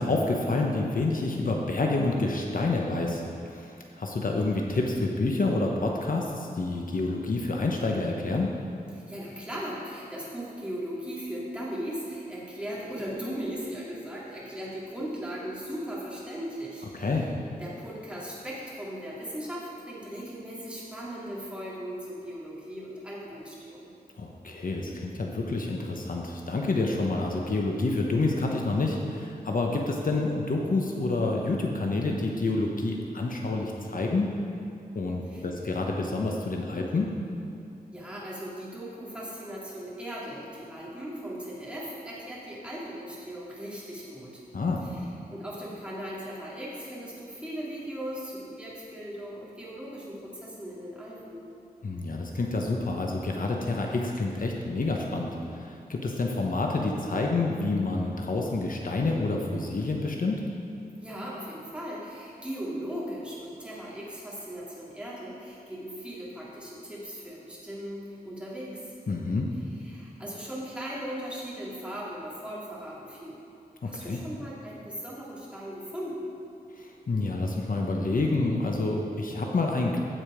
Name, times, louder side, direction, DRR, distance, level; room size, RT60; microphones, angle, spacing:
voice 1, 0.0-8.6 16.9-17.3 24.2-34.3 34.9-37.1 44.5-44.8 51.8-60.4 69.1-69.5 73.8-74.2 76.8-80.0, left 2 dB, 60° left, 0 dB, 0.9 m, -28 dB
voice 2, 8.9-17.3 17.6-23.9 35.3-35.4 37.9-44.4 44.8-45.0 45.3-51.4 61.0-68.9 69.8-73.4 73.8-76.3, equal, 5° right, -7 dB, 2.5 m, -38 dB
15.0 x 5.1 x 5.0 m, 2.7 s
wide cardioid pair, 105°, 16 cm